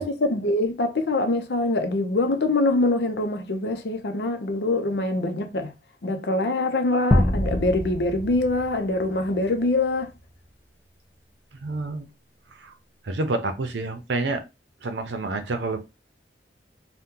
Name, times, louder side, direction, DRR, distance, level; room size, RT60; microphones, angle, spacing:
voice 1, 0.0-5.7 6.0-10.1, left 2 dB, 65° left, 0.6 m, -24 dB
sound 1, 7.1-9.7, left 1 dB, 10° left, 0.4 m, -25 dB
voice 2, 11.6-12.1 12.6-12.7 13.0-14.4 14.8-15.8, right 2 dB, 85° right, 0.6 m, -28 dB
2.8 x 2.2 x 3.6 m
head